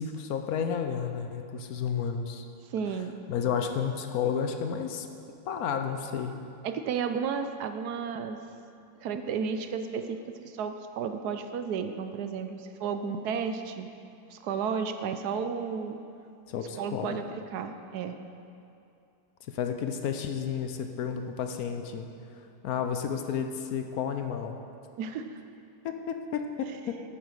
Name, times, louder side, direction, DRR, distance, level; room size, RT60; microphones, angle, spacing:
voice 1, 0.0-2.4 3.3-5.1 5.5-6.4 16.5-17.2 19.5-22.1 22.6-24.6 25.8-27.0, left 7 dB, 70° left, 6 dB, 1.1 m, -31 dB
voice 2, 2.7-3.1 6.6-8.4 9.0-10.2 10.4-13.9 14.3-16.0 16.8-17.2 17.5-18.2 25.0-25.4, right 6 dB, 75° right, 8 dB, 1.2 m, -32 dB
9.2 x 8.8 x 6.4 m, 2.6 s
omnidirectional pair, 1.8 m